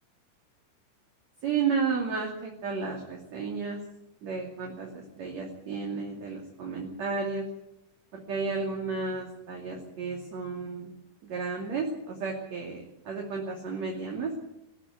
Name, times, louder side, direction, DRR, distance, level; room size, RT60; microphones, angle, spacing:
voice 1, 1.4-3.8 4.2-7.5 8.1-10.9 11.2-14.3, right 5 dB, 45° right, 0 dB, 3.6 m, -32 dB
20.0 x 15.0 x 9.7 m, 0.85 s
omnidirectional pair, 4.6 m